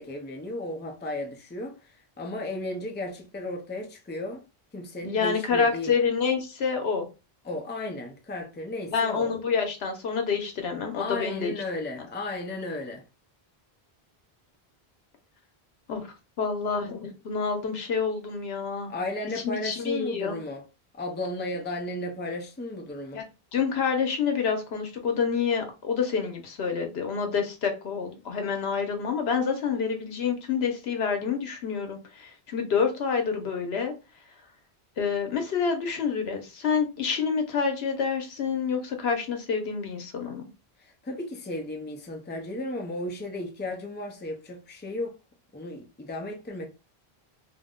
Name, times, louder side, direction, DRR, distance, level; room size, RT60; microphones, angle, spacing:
voice 1, 0.0-4.4 4.7-5.9 7.4-9.4 10.9-13.0 18.8-20.7 20.9-23.3 40.8-45.1 45.5-46.7, left 1 dB, 15° left, 0.4 m, -34 dB
voice 2, 5.0-7.1 8.9-11.5 15.9-16.1 16.4-18.9 19.4-20.4 23.1-23.2 23.5-33.9 35.0-40.5, left 6 dB, 85° left, 1.0 m, -28 dB
2.5 x 2.1 x 3.6 m
omnidirectional pair, 1.0 m